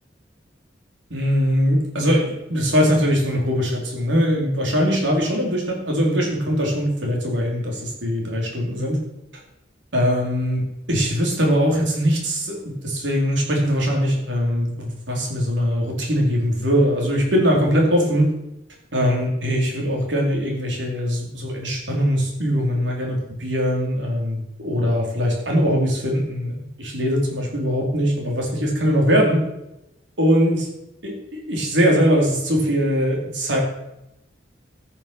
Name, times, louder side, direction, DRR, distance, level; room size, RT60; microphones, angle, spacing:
voice 1, 1.1-9.0 9.9-12.6 12.8-18.3 18.9-29.4 30.2-30.7 31.0-33.6, equal, 90° right, -1 dB, 4.0 m, -21 dB
14.5 x 7.2 x 6.2 m, 0.88 s
head